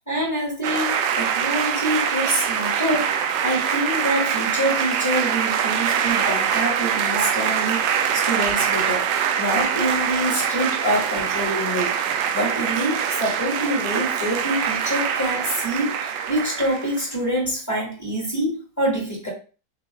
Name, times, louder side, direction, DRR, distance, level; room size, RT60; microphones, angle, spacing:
voice 1, 0.1-9.1 9.4-12.0 12.3-19.3, right 1 dB, 10° left, -5 dB, 2.3 m, -26 dB
sound 1, 0.6-17.1, right 8 dB, 75° right, 1.2 m, -24 dB
6.4 x 3.1 x 2.4 m, 0.34 s
omnidirectional pair, 2.0 m